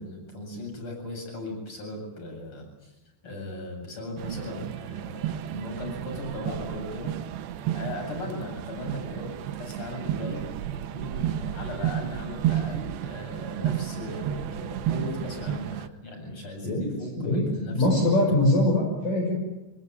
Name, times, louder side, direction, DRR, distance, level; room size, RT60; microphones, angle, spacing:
voice 1, 0.0-2.9 3.2-7.1 7.7-18.2, left 1 dB, 30° left, 3 dB, 8.5 m, -37 dB
sound 1, 4.2-15.9, right 11 dB, 75° right, 3.0 m, -32 dB
voice 2, 17.2-19.4, left 1 dB, 45° left, -1 dB, 7.3 m, -23 dB
26.0 x 22.0 x 9.1 m, 0.98 s
omnidirectional pair, 5.3 m